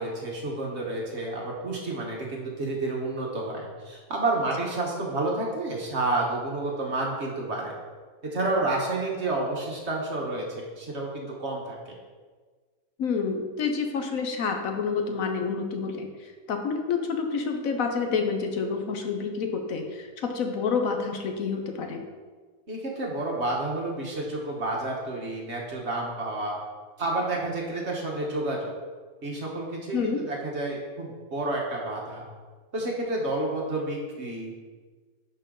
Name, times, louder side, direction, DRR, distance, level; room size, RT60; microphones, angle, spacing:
voice 1, 0.0-7.7 8.3-12.0 22.7-26.6 27.0-28.7 29.2-32.2 32.7-34.6, right 2 dB, 50° right, -2 dB, 1.5 m, -30 dB
voice 2, 13.0-22.0 29.9-30.2, left 5 dB, 70° left, 4 dB, 1.2 m, -28 dB
11.0 x 4.5 x 3.8 m, 1.5 s
omnidirectional pair, 1.6 m